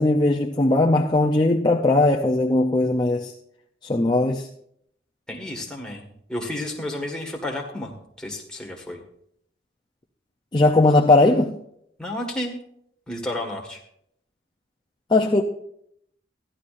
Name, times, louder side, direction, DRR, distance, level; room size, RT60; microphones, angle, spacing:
voice 1, 0.0-3.3 3.8-4.5 10.5-11.6 15.1-15.4, left 2 dB, 20° left, 0.5 m, -19 dB
voice 2, 5.3-9.0 12.0-12.6 13.1-13.8, left 1 dB, 5° left, 1.6 m, -32 dB
15.5 x 11.0 x 2.5 m
head